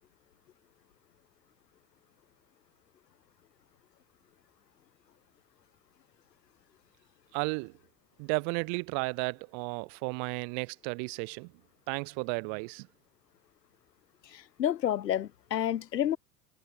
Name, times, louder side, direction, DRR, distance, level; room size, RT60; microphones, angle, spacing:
voice 1, 7.3-7.7 8.2-11.5 11.9-12.9, right 40 dB or more, 55° right, 2.4 m, -33 dB
voice 2, 14.3-16.2, left 11 dB, 75° left, 3.5 m, -30 dB
figure-of-eight pair, 80°, 49 cm